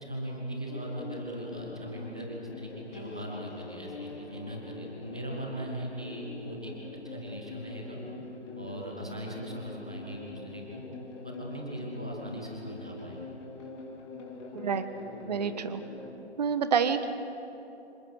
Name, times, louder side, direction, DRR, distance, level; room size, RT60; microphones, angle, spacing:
voice 1, 0.0-6.7 7.0-8.0 8.6-10.8 11.2-13.3, equal, 5° left, -1 dB, 0.5 m, -39 dB
sound 1, 0.7-16.1, left 3 dB, 25° left, 3.2 m, -44 dB
voice 2, 14.5-14.8 15.3-15.8 16.4-17.1, right 6 dB, 35° right, 11 dB, 1.3 m, -28 dB
26.0 x 24.5 x 6.3 m, 2.9 s
figure-of-eight pair, 150°, 34 cm